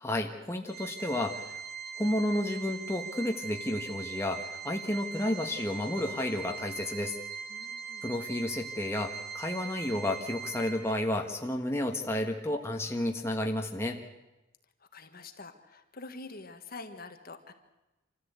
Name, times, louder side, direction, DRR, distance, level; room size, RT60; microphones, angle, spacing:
voice 1, 0.0-1.5 2.0-7.2 8.0-14.0, left 1 dB, 15° left, 2 dB, 1.5 m, -31 dB
Organ, 0.7-11.3, right 6 dB, 50° right, 3.0 m, -41 dB
voice 2, 7.5-8.0 14.9-17.5, left 3 dB, 45° left, 6 dB, 1.6 m, -46 dB
26.5 x 14.0 x 8.3 m, 1.0 s
head